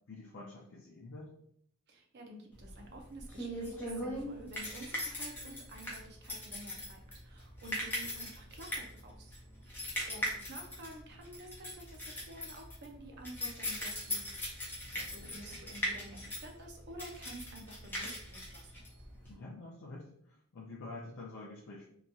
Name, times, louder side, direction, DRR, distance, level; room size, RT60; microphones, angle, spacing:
voice 1, 0.1-1.3 14.8-15.6 19.3-21.8, left 2 dB, 55° left, -5 dB, 0.5 m, -48 dB
voice 2, 1.9-9.4 9.7-14.6 14.8-18.9, right 1 dB, 50° right, 2 dB, 0.5 m, -50 dB
sound 1, 2.6-19.3, left 1 dB, 10° left, 0.7 m, -40 dB
2.9 x 2.2 x 2.6 m, 0.68 s
head